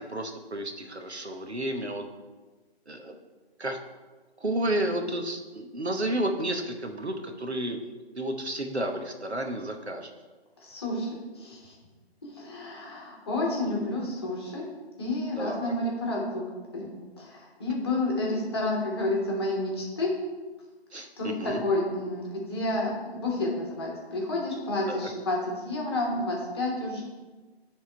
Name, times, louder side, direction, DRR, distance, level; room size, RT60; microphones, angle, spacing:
voice 1, 0.0-2.0 2.9-3.2 3.6-3.8 4.4-10.1 15.4-15.7 20.9-21.6 24.9-25.0, right 1 dB, 85° right, 4 dB, 1.0 m, -31 dB
voice 2, 10.6-11.1 11.3-11.8 12.2-14.6 15.0-16.4 16.7-20.1 21.2-27.0, left 2 dB, 25° left, -3 dB, 1.2 m, -30 dB
9.4 x 3.6 x 4.4 m, 1.3 s
figure-of-eight pair, 150°, 32 cm